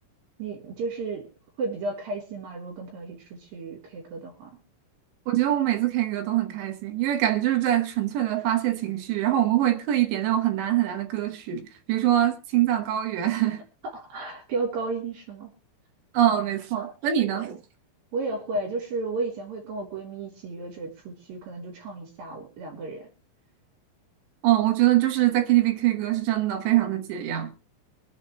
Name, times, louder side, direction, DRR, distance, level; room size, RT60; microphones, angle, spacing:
voice 1, 0.4-1.3 1.6-4.6 13.9-15.5 18.1-23.1, right 3 dB, 55° right, 4.9 m, -33 dB
voice 2, 5.3-13.6 16.1-17.6 24.4-27.7, right 13 dB, 75° right, 3.1 m, -24 dB
24.0 x 8.1 x 3.2 m
omnidirectional pair, 5.4 m